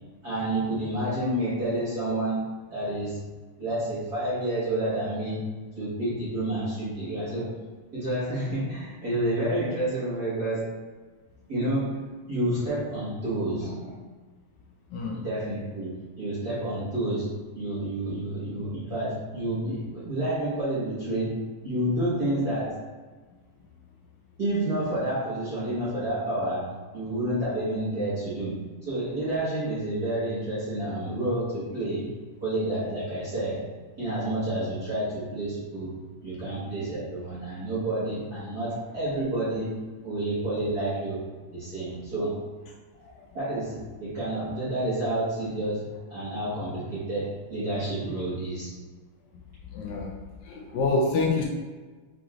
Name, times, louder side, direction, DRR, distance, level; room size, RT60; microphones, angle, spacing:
voice 1, 0.2-3.2 3.6-5.5 5.7-7.5 7.9-10.7 11.5-13.9 15.1-22.9 24.4-32.1 32.4-33.7 34.0-42.4 43.3-48.7, right 1 dB, 45° right, -12 dB, 1.3 m, -29 dB
voice 2, 49.7-50.1 50.4-51.4, left 3 dB, 75° left, -1 dB, 1.8 m, -27 dB
6.0 x 3.4 x 2.4 m, 1.4 s
omnidirectional pair, 3.5 m